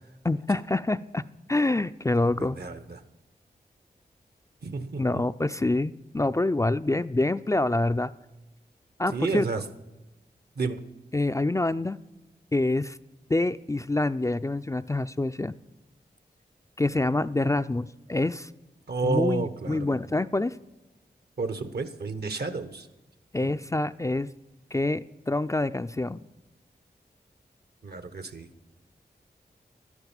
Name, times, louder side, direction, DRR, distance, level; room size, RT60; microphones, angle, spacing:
voice 1, 0.2-1.2 1.5-2.6 5.0-8.1 9.0-9.5 11.1-12.0 12.5-13.0 13.3-15.5 16.8-18.5 19.0-20.6 23.3-24.3 24.7-26.2, left 2 dB, 20° left, 11 dB, 0.4 m, -26 dB
voice 2, 2.4-3.0 4.6-5.2 9.1-9.6 10.6-10.8 18.9-19.9 21.4-22.9 23.4-23.5 27.8-28.5, right 3 dB, 65° right, 11 dB, 1.0 m, -31 dB
11.5 x 9.8 x 7.2 m, 1.0 s
cardioid pair, 40°, 18 cm